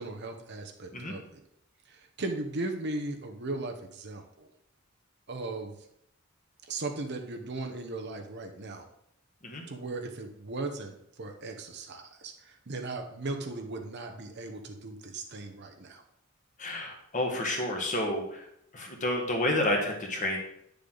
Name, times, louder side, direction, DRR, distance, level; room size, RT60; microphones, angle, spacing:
voice 1, 0.0-1.4 1.9-4.5 5.3-5.7 6.7-8.9 9.7-16.0, right 2 dB, 55° right, 4 dB, 1.0 m, -37 dB
voice 2, 16.6-18.4 18.7-20.4, left 1 dB, 35° left, 1 dB, 1.7 m, -30 dB
9.6 x 6.9 x 4.0 m, 0.76 s
head